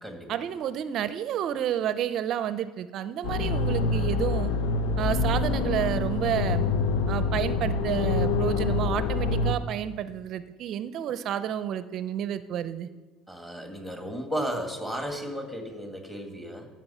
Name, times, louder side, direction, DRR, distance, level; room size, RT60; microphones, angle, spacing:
voice 1, 0.3-4.5 5.0-6.6 7.1-12.9, right 10 dB, 50° right, 13 dB, 0.5 m, -30 dB
sound 1, 3.2-9.5, left 3 dB, 80° left, 0.8 m, -26 dB
voice 2, 13.3-16.7, equal, 5° left, 4 dB, 1.7 m, -34 dB
13.5 x 6.2 x 5.6 m, 1.3 s
cardioid pair, 130°, 0 cm